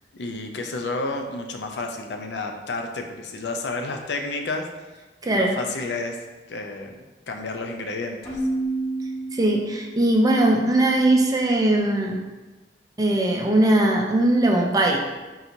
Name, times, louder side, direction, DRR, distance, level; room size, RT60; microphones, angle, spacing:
voice 1, 0.1-4.6 5.2-6.2 6.5-8.4, left 3 dB, 75° left, 4 dB, 0.5 m, -31 dB
voice 2, 5.2-5.6 9.3-12.2 13.0-15.0, right 1 dB, 20° right, 2 dB, 0.5 m, -20 dB
Keyboard (musical), 8.2-10.1, right 2 dB, 20° left, 1.2 m, -29 dB
3.9 x 2.7 x 4.4 m, 1.2 s
head